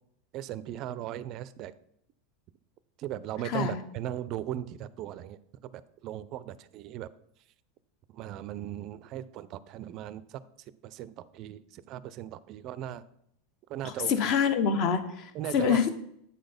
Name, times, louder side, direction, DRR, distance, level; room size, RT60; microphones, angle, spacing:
voice 1, 0.3-1.7 3.0-7.1 8.1-10.4 10.8-13.0 13.7-14.1 15.3-15.9, right 12 dB, 40° right, 16 dB, 0.4 m, -38 dB
voice 2, 3.4-3.8 13.8-15.9, left 7 dB, 40° left, 10 dB, 0.8 m, -26 dB
8.6 x 4.0 x 5.1 m, 0.72 s
supercardioid pair, 155°, 0 cm